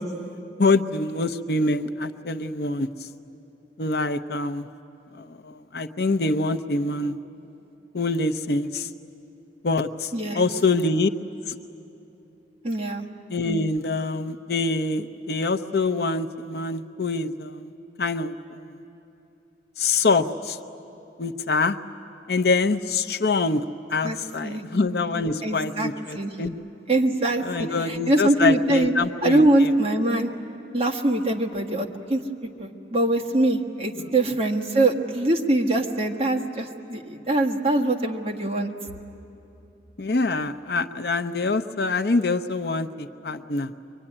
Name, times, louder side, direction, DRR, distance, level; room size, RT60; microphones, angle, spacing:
voice 1, 0.6-2.9 3.8-4.6 5.4-7.2 7.9-8.9 9.6-10.1 10.3-11.1 13.3-17.7 18.0-18.3 19.8-20.6 21.2-21.8 22.3-23.6 23.9-26.5 27.4-29.7 34.0-34.1 40.0-43.7, left 3 dB, 55° left, 7 dB, 0.7 m, -25 dB
voice 2, 10.1-10.5 12.6-13.1 24.0-24.6 25.4-26.4 26.9-28.9 29.2-30.3 30.7-32.2 32.6-38.7, right 1 dB, 30° right, 1 dB, 1.6 m, -23 dB
24.0 x 24.0 x 9.9 m, 2.9 s
head